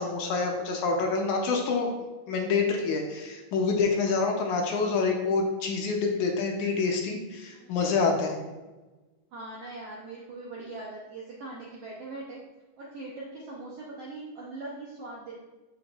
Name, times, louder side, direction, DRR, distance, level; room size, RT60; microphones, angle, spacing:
voice 1, 0.0-1.9 2.3-8.4, left 4 dB, 75° left, 2 dB, 2.0 m, -27 dB
voice 2, 9.3-12.4 12.8-15.3, right 2 dB, 75° right, -4 dB, 1.4 m, -41 dB
6.9 x 5.7 x 2.4 m, 1.2 s
omnidirectional pair, 3.8 m